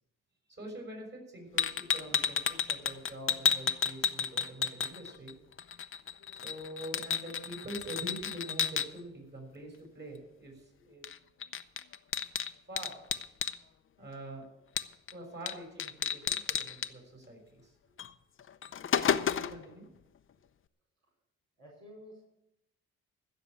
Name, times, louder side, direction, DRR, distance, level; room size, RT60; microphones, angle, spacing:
voice 1, 0.6-5.3 6.4-11.1 12.7-13.0 14.0-14.6 15.1-17.6 19.3-19.8, right 1 dB, 35° right, 1 dB, 6.4 m, -45 dB
sound 1, 1.6-5.3 5.6-8.9 11.0-11.2 11.4-13.6 14.8-15.1 15.5-15.6 15.8-16.9 18.0-18.1 18.5-19.6, left 7 dB, 45° left, 0.7 m, -31 dB
voice 2, 19.4-19.8 21.6-22.2, equal, 60° right, -4 dB, 4.9 m, -53 dB
15.0 x 6.8 x 8.7 m, 0.87 s
cardioid pair, 90°, 30 cm